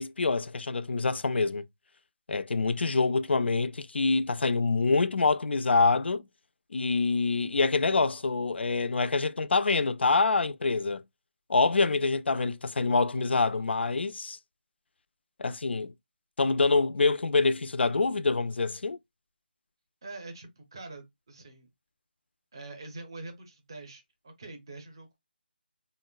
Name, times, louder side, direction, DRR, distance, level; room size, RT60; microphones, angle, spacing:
voice 1, 0.0-1.6 2.3-6.3 6.7-11.0 11.5-14.4 15.4-15.9 16.4-19.0, left 3 dB, 75° left, 0.3 m, -26 dB
voice 2, 20.0-21.7 22.5-25.2, right 2 dB, 25° right, 0.5 m, -44 dB
3.7 x 2.0 x 2.2 m
figure-of-eight pair, 175°, 6 cm